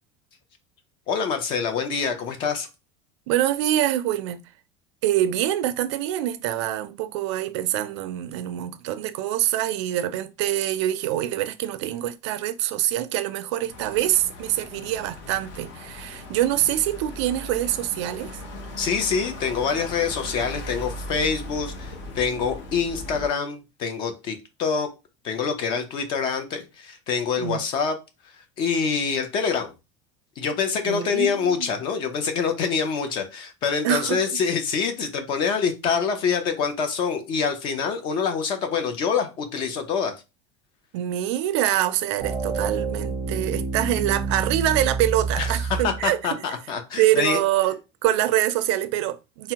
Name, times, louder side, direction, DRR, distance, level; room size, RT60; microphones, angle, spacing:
voice 1, 1.1-2.7 18.8-24.9 25.2-28.0 28.6-29.7 30.4-40.1 45.4-47.4, left 6 dB, 35° left, 0.5 m, -26 dB
voice 2, 3.3-4.4 5.0-18.4 27.4-27.6 30.9-31.6 33.8-34.2 40.9-46.2 47.0-49.5, right 13 dB, 75° right, 0.4 m, -25 dB
sound 1, 13.7-23.3, left 1 dB, 55° left, 0.8 m, -38 dB
sound 2, 42.2-46.1, right 4 dB, 10° right, 0.7 m, -28 dB
3.4 x 2.0 x 2.8 m
cardioid pair, 175°, 15 cm